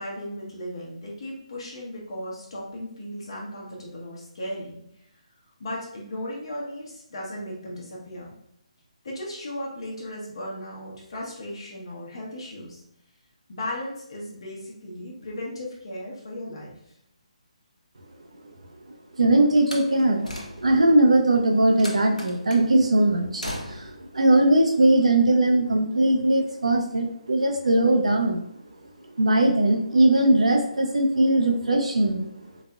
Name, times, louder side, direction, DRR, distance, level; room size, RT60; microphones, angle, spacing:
voice 1, 0.0-4.8 5.6-8.4 9.0-12.8 13.5-16.9, left 1 dB, 50° left, -4 dB, 0.9 m, -36 dB
voice 2, 19.1-28.4 29.2-32.3, right 1 dB, 65° right, 1 dB, 0.4 m, -20 dB
Slam, 19.6-20.9 21.8-22.7 23.4-24.0, equal, 90° left, 0.8 m, -37 dB
3.9 x 2.6 x 2.3 m, 0.75 s
figure-of-eight pair, 140°, 4 cm